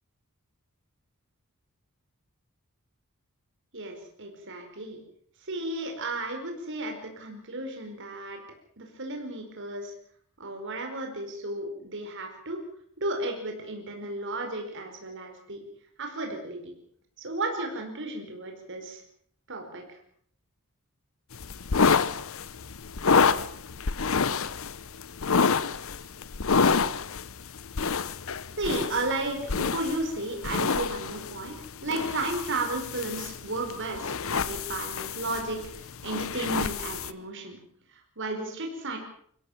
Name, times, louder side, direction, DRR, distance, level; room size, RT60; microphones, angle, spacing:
voice 1, 3.7-5.0 5.4-8.4 8.8-9.9 10.4-12.6 13.0-15.6 16.0-16.6 17.2-19.0 19.5-20.0 28.6-37.6 37.9-39.0, right 2 dB, 60° right, 3 dB, 5.0 m, -34 dB
sound 1, 21.3-37.1, left 5 dB, 65° left, 0.9 m, -28 dB
24.0 x 16.5 x 7.4 m, 0.63 s
head